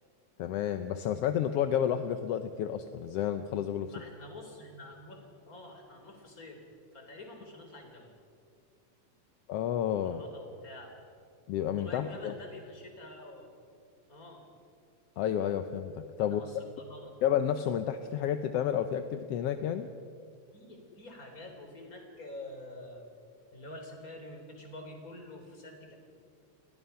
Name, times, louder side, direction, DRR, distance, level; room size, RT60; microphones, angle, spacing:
voice 1, 0.4-3.9 9.5-10.2 11.5-12.3 15.2-16.4 17.2-19.9, left 9 dB, 70° left, 9 dB, 1.6 m, -30 dB
voice 2, 3.9-6.6 6.9-8.1 10.0-11.1 11.8-13.5 14.1-14.4 16.2-17.2 20.5-23.1 23.5-26.0, left 1 dB, 30° left, 3 dB, 4.0 m, -47 dB
30.0 x 21.5 x 5.8 m, 2.3 s
omnidirectional pair, 3.3 m